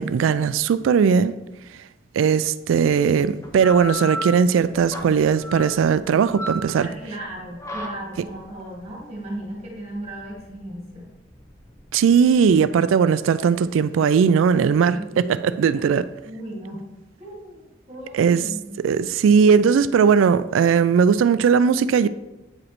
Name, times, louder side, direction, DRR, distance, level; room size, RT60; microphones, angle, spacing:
voice 1, 0.0-1.3 2.1-6.9 11.9-16.1 18.1-18.4 18.8-22.1, right 6 dB, 75° right, 0.3 m, -18 dB
sound 1, 3.4-12.6, left 1 dB, 15° left, 0.6 m, -35 dB
voice 2, 6.7-11.1 14.9-16.8 17.2-18.7, right 1 dB, 35° right, 1.9 m, -36 dB
8.3 x 5.0 x 3.0 m
head